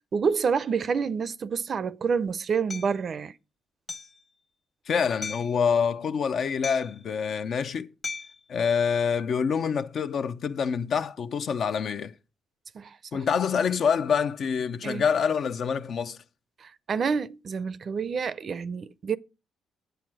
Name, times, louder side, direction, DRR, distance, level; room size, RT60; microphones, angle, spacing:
voice 1, 0.0-3.3 12.7-13.2 14.8-15.0 16.6-19.2, right 6 dB, 50° right, 0.5 m, -28 dB
Hammer, 2.7-2.9 3.9-4.2 5.2-5.6 6.6-7.0 8.0-8.4, left 4 dB, 35° left, 1.3 m, -36 dB
voice 2, 4.9-7.9 8.5-12.1 13.1-16.2, left 6 dB, 60° left, 0.7 m, -26 dB
9.2 x 7.9 x 4.8 m
cardioid pair, 90°, 0 cm